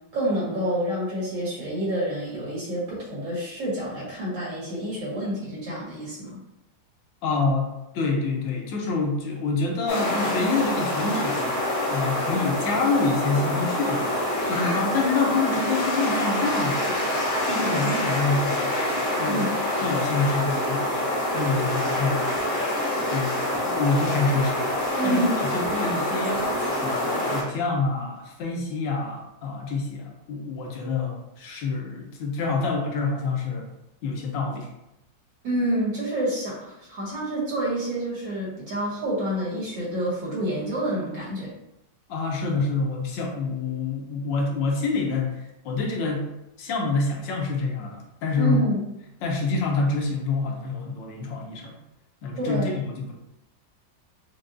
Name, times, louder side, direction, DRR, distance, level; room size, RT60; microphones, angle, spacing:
voice 1, 0.1-6.4 19.2-19.5 25.0-25.4 35.4-41.5 48.4-48.8 52.4-52.8, right 1 dB, 75° right, -7 dB, 2.3 m, -28 dB
voice 2, 7.2-11.5 11.9-14.2 14.5-17.0 17.4-18.8 19.2-19.5 19.8-21.1 21.3-22.3 23.1-23.3 23.6-24.7 25.0-26.5 26.8-33.7 34.0-34.7 42.1-46.3 46.6-48.7 49.2-51.7 52.2-53.1, left 3 dB, 90° left, 1 dB, 1.5 m, -27 dB
sound 1, 9.9-27.4, left 1 dB, 70° left, 1.6 m, -26 dB
6.1 x 2.2 x 2.5 m, 0.87 s
omnidirectional pair, 2.0 m